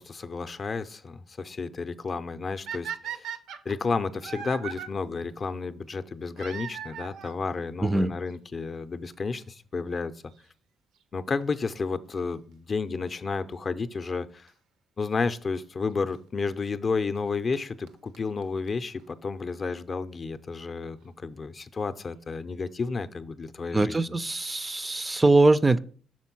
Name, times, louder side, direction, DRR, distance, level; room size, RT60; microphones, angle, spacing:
voice 1, 0.0-3.3 3.6-10.2 11.1-14.5 15.0-24.0, left 4 dB, 40° left, 11 dB, 0.5 m, -31 dB
sound 1, 2.7-4.9 6.4-7.4 8.3-8.4 9.1-9.2 9.4-9.5 11.4-11.7 14.5-14.6 15.6-15.7 17.2-17.3 17.5-17.6 17.9-18.0 18.1-18.2 18.4-18.5 18.7-18.8 19.0-19.1, right 8 dB, 90° right, 0.6 m, -38 dB
voice 2, 7.8-8.1 23.7-25.8, right 2 dB, 20° right, 14 dB, 0.3 m, -22 dB
6.3 x 3.7 x 5.9 m, 0.43 s
cardioid pair, 90°, 0 cm